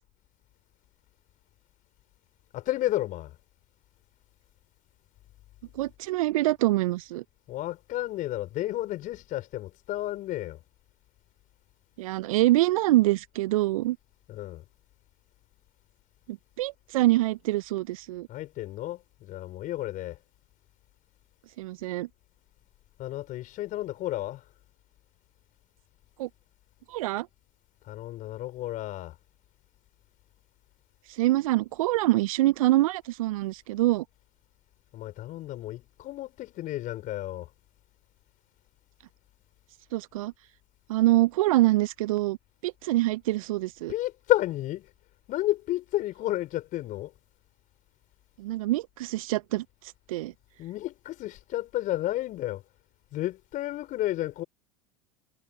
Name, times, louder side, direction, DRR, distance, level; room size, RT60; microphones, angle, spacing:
voice 1, 2.5-3.3 7.5-10.6 14.3-14.6 18.3-20.2 23.0-24.4 27.9-29.1 34.9-37.5 43.9-44.9 45.3-47.1 50.6-52.6 53.1-54.4, left 15 dB, 45° left, 4.6 m, -31 dB
voice 2, 5.7-7.2 12.0-14.0 16.3-18.3 21.6-22.1 26.2-26.3 26.9-27.3 31.1-34.0 39.9-40.3 40.9-42.4 42.6-43.9 48.4-49.6 50.1-50.3, right 17 dB, 70° right, 0.6 m, -25 dB
hypercardioid pair, 85°, 19 cm